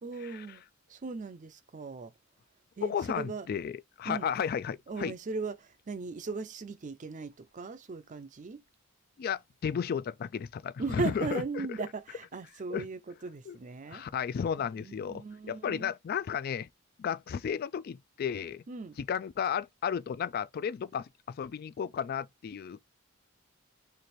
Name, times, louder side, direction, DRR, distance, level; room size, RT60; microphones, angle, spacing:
voice 1, 0.0-0.6 0.9-2.1 2.8-3.5 4.0-4.3 4.9-8.6 10.8-14.0 14.6-15.9 18.7-19.0, right 4 dB, 35° right, 0.5 m, -38 dB
voice 2, 2.8-5.1 9.2-11.7 12.7-12.8 13.5-13.6 13.9-16.7 17.0-18.6 19.0-22.8, left 7 dB, 45° left, 0.3 m, -33 dB
3.2 x 2.5 x 4.2 m
head